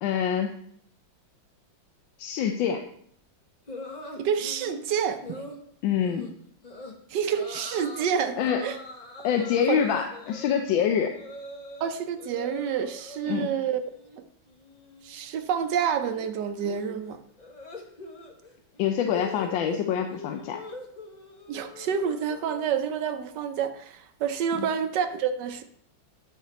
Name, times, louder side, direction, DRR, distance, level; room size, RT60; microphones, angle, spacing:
voice 1, 0.0-0.5 2.2-2.8 5.8-6.3 8.4-8.7 9.2-11.1 13.3-13.5 18.8-20.6 24.5-24.7, left 8 dB, 75° left, 5 dB, 1.3 m, -26 dB
sound 1, 3.7-4.8 5.2-5.6 6.0-6.3 6.6-6.9 7.3-8.1 8.4-11.9 12.2-13.5 13.8-14.2 14.5-22.6, left 2 dB, 45° left, 0.5 m, -43 dB
voice 2, 4.2-5.5 7.1-8.8 9.7-9.8 11.8-13.8 15.0-17.2 21.5-25.6, right 7 dB, 70° right, 9 dB, 1.1 m, -28 dB
9.8 x 4.9 x 4.1 m, 0.67 s
omnidirectional pair, 2.2 m